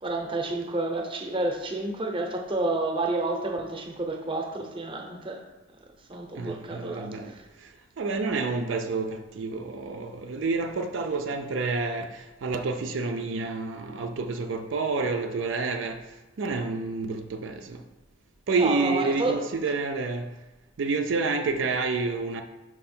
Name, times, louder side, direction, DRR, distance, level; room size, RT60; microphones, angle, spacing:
voice 1, 0.0-5.4 6.1-7.4 18.5-19.8, right 2 dB, 30° right, 0.7 m, -30 dB
voice 2, 6.3-17.8 18.5-20.3 20.8-22.4, right 3 dB, 75° right, 0.4 m, -29 dB
5.5 x 4.5 x 4.3 m
head